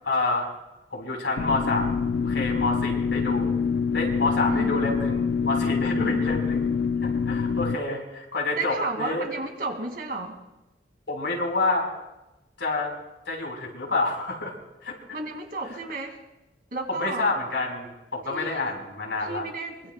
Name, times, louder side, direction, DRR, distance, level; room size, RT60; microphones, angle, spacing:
voice 1, 0.0-0.5 0.9-3.5 3.9-6.6 7.0-9.2 11.1-11.9 12.6-12.9 13.3-14.5 14.8-15.0 16.9-19.4, left 2 dB, 90° left, 0 dB, 4.1 m, -28 dB
sound 1, 1.4-7.8, left 5 dB, 75° left, 0.5 m, -25 dB
voice 2, 4.5-5.0 5.9-6.2 8.6-10.4 15.1-16.2 16.7-17.3 18.3-18.7 19.2-19.9, right 2 dB, 55° right, 4 dB, 2.1 m, -33 dB
23.5 x 22.5 x 2.2 m, 0.98 s
head